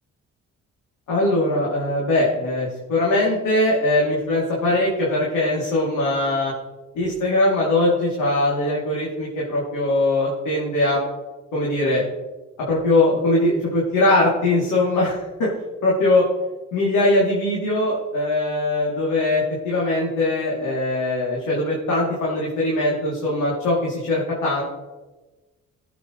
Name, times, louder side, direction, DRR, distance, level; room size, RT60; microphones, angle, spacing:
voice 1, 1.1-6.5 6.9-11.0 11.5-12.0 12.7-15.5 15.8-16.3 16.7-24.6, left 2 dB, 85° left, -5 dB, 3.0 m, -21 dB
18.0 x 8.2 x 3.2 m, 1.2 s
cardioid pair, 90°, 30 cm